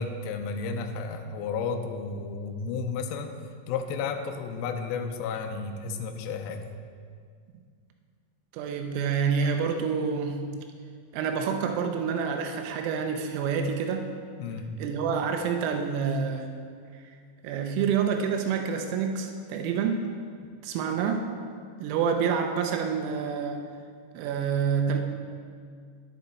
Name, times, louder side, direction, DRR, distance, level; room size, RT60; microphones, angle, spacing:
voice 1, 0.0-3.3 3.7-6.7 14.4-14.7, left 5 dB, 90° left, 4 dB, 2.5 m, -32 dB
voice 2, 8.5-10.5 11.1-14.1 14.8-16.5 17.4-20.1 20.6-21.3 21.8-23.6 24.1-25.0, right 6 dB, 90° right, 4 dB, 3.5 m, -27 dB
11.0 x 10.5 x 4.2 m, 2.1 s
omnidirectional pair, 5.8 m